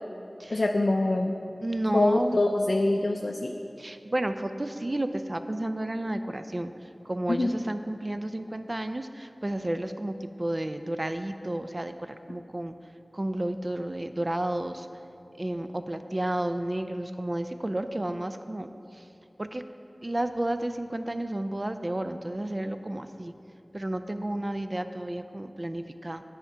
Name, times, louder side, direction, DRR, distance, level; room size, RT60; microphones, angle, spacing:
voice 1, 0.5-1.3 1.9-3.5 7.3-7.5, left 2 dB, 70° left, 2 dB, 0.4 m, -24 dB
voice 2, 1.6-2.4 3.8-6.7 7.1-12.7 13.1-14.9 15.4-18.7 18.9-19.0 19.4-19.6 20.0-23.3 23.7-26.2, right 1 dB, 40° right, 9 dB, 0.4 m, -31 dB
9.8 x 4.9 x 4.5 m, 2.8 s
wide cardioid pair, 50°, 0 cm